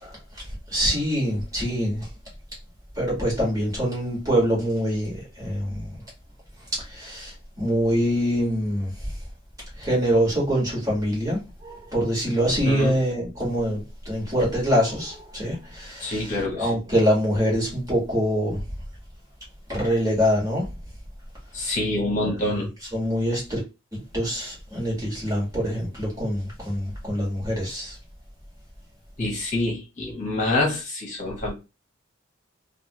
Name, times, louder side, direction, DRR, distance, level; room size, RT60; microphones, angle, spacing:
voice 1, 0.0-2.1 2.9-5.9 6.8-9.1 9.8-18.6 19.7-20.7 21.6-21.7 22.2-22.7 22.9-23.6 23.9-28.0, equal, 15° right, 1.7 m, -25 dB
voice 2, 12.6-13.0 16.0-16.7 21.5-22.7 29.2-31.5, left 2 dB, 35° left, 1.2 m, -26 dB
3.2 x 2.5 x 3.0 m
head